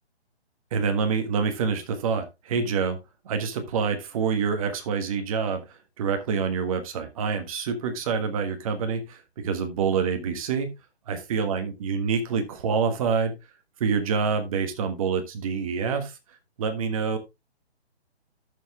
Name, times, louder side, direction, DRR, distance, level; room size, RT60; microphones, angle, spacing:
voice 1, 0.7-3.0 3.2-10.7 11.1-13.3 13.8-16.2 16.6-17.2, right 5 dB, 30° right, 7 dB, 1.4 m, -26 dB
13.5 x 6.9 x 2.4 m, 0.23 s
figure-of-eight pair, 145°, 33 cm